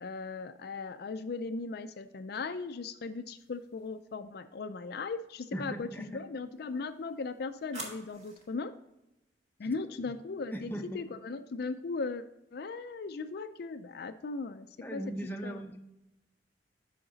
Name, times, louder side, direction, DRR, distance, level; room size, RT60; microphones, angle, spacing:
voice 1, 0.0-8.7 9.6-12.2 12.5-15.0 15.4-15.6, left 4 dB, 60° left, 9 dB, 0.4 m, -38 dB
sound 1, 3.4-4.1 6.5-8.6, right 2 dB, 40° right, 1.9 m, -48 dB
voice 2, 5.5-6.2 10.5-11.0 14.8-15.8, right 1 dB, 10° left, 3 dB, 0.8 m, -38 dB
8.8 x 5.8 x 3.9 m, 0.91 s
head